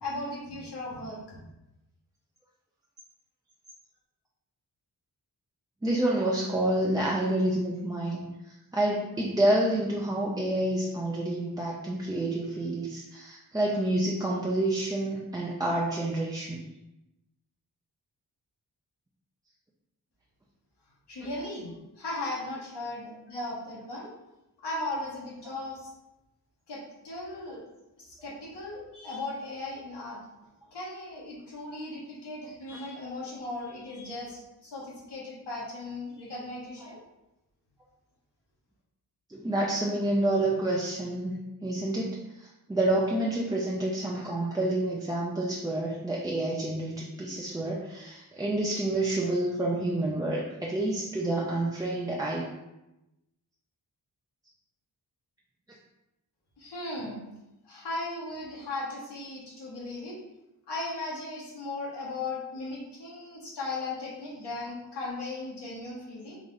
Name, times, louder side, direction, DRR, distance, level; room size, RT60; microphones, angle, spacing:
voice 1, 0.0-1.4 21.1-24.1 24.6-25.9 26.7-27.6 28.0-30.2 30.7-37.0 56.6-57.2 57.6-60.2 60.7-66.4, left 2 dB, 75° left, -5 dB, 1.2 m, -37 dB
voice 2, 5.8-8.3 8.7-16.6 25.4-25.5 36.8-36.9 39.3-42.2 42.7-52.5, right 1 dB, 10° right, -4 dB, 0.4 m, -28 dB
3.8 x 2.5 x 3.2 m, 0.93 s
wide cardioid pair, 80°, 41 cm